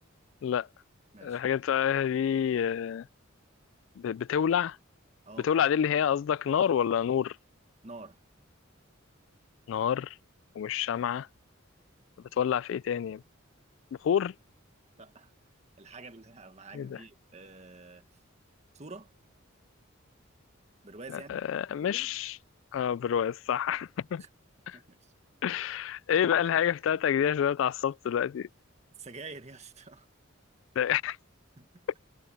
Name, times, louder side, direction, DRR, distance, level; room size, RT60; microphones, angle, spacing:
voice 1, 1.2-3.1 4.0-4.8 5.4-7.4 9.7-10.2 10.6-11.3 12.3-13.2 14.0-14.3 16.7-17.0 21.3-22.4 22.7-24.2 25.4-28.5 30.8-31.2, left 8 dB, 65° left, 0.3 m, -28 dB
voice 2, 7.8-8.2 15.0-15.3 15.8-18.1 18.7-19.1 20.8-21.4 24.2-24.3 24.7-25.1 29.0-30.1 31.6-31.9, right 3 dB, 35° right, 1.7 m, -47 dB
head